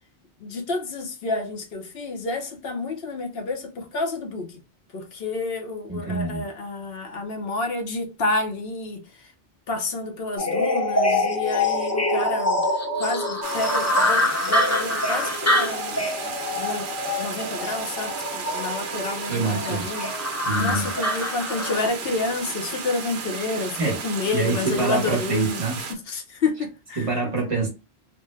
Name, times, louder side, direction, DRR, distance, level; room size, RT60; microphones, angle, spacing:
voice 1, 0.4-4.6 4.9-9.0 9.7-12.6 13.0-16.9 17.2-20.1 20.6-25.6 25.9-27.1, left 3 dB, 65° left, 1.0 m, -29 dB
voice 2, 5.9-6.5 19.3-20.0 20.4-20.9 23.8-24.0 24.3-25.8 27.0-27.7, right 3 dB, 35° right, 1.0 m, -26 dB
sound 1, 10.4-21.9, left 1 dB, 20° left, 0.5 m, -25 dB
sound 2, 13.4-25.9, right 5 dB, 80° right, 1.0 m, -34 dB
3.2 x 2.1 x 3.1 m
omnidirectional pair, 1.1 m